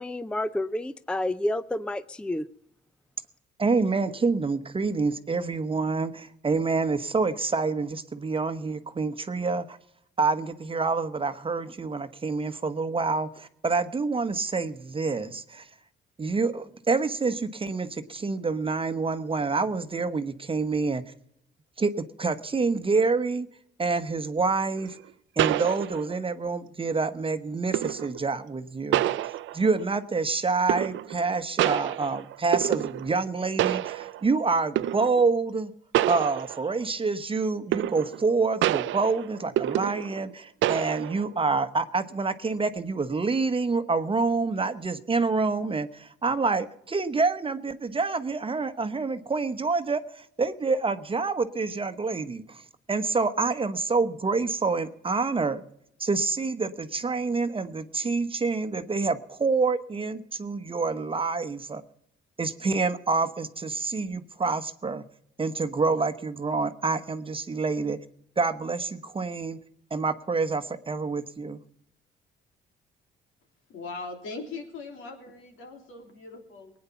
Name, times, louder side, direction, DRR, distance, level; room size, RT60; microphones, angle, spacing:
voice 1, 0.0-2.5, left 1 dB, 5° left, 15 dB, 0.5 m, -29 dB
voice 2, 3.6-9.8 10.2-15.7 16.2-21.0 21.8-23.5 23.8-25.0 25.4-29.0 29.5-35.7 36.1-52.6 52.9-55.6 56.0-61.8 62.4-65.0 65.4-68.0 68.4-69.6 69.9-71.6, right 4 dB, 25° right, 11 dB, 1.0 m, -27 dB
sound 1, 24.8-24.9 25.4-26.3 27.7-28.2 28.9-29.8 30.7-31.3 31.6-33.3 33.6-34.3 34.8-35.2 35.9-36.9 37.7-38.3 38.6-40.3 40.6-41.3, right 13 dB, 75° right, 0.5 m, -27 dB
voice 3, 73.7-76.7, left 3 dB, 80° left, 3 dB, 3.4 m, -40 dB
19.5 x 9.6 x 5.8 m, 0.74 s
cardioid pair, 90°, 20 cm